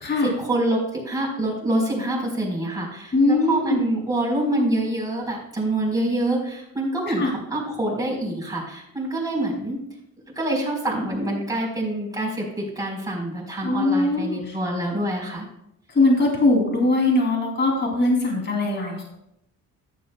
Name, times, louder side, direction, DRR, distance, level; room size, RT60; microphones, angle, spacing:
voice 1, 0.2-9.8 10.3-15.5, right 1 dB, 10° right, -3 dB, 3.9 m, -26 dB
voice 2, 3.1-3.8 7.2-7.3 13.6-14.6 15.9-19.0, left 2 dB, 30° left, 0 dB, 2.7 m, -21 dB
13.5 x 11.0 x 2.2 m, 0.80 s
cardioid pair, 115°, 33 cm